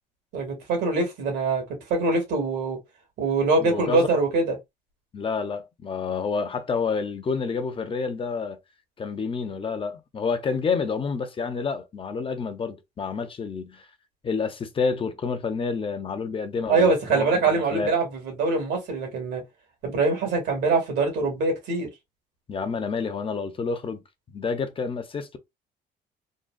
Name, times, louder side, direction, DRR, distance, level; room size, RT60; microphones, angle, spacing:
voice 1, 0.3-1.6 1.9-2.8 3.2-4.6 16.7-19.4 19.8-21.9, right 3 dB, 80° right, 1.8 m, -23 dB
voice 2, 3.6-4.1 5.1-8.6 9.0-13.9 14.2-17.9 22.5-24.0 24.3-25.4, left 5 dB, 30° left, 0.7 m, -29 dB
3.8 x 2.3 x 2.3 m
cardioid pair, 110°, 17 cm